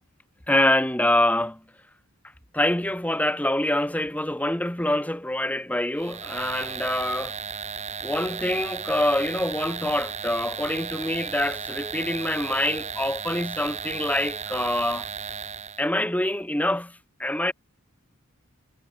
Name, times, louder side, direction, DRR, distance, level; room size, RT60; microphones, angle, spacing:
voice 1, 0.5-1.6 2.5-7.4 8.0-15.1 15.8-17.5, left 1 dB, 5° left, 1.3 m, -25 dB
sound 1, 6.0-15.9, right 6 dB, 30° right, 1.8 m, -35 dB
head